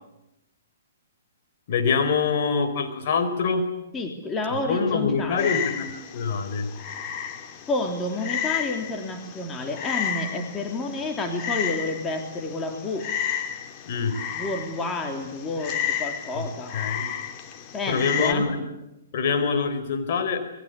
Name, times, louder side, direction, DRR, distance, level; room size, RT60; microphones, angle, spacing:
voice 1, 1.7-3.7 4.7-6.7 13.9-14.2 16.3-16.4 16.7-17.1 17.9-18.6 19.1-20.4, left 5 dB, 50° left, 6 dB, 4.6 m, -25 dB
voice 2, 3.9-5.5 7.7-13.1 14.3-16.8 17.7-18.5, left 2 dB, 15° left, 3 dB, 3.3 m, -30 dB
Frog, 5.4-18.3, left 9 dB, 30° left, 2.8 m, -32 dB
28.5 x 22.0 x 8.4 m, 0.91 s
figure-of-eight pair, 120°, 0 cm